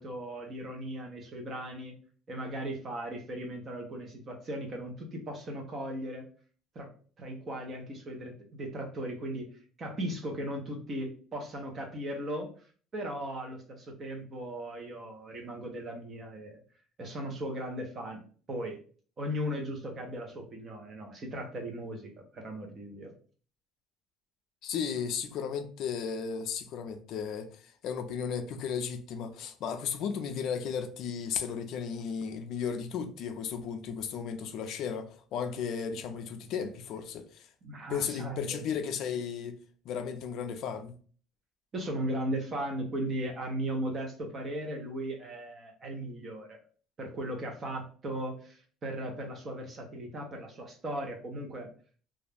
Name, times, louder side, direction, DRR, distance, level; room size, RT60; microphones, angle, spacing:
voice 1, 0.0-2.0 2.3-6.2 6.7-9.5 9.8-12.5 12.9-16.6 17.0-18.8 19.2-23.1 37.6-38.7 41.7-46.6 47.0-51.7, right 1 dB, 25° right, 0.6 m, -37 dB
voice 2, 24.6-37.5 37.9-39.6 39.8-40.9, left 7 dB, 50° left, 0.3 m, -35 dB
2.3 x 2.0 x 3.2 m
cardioid pair, 170°, 0 cm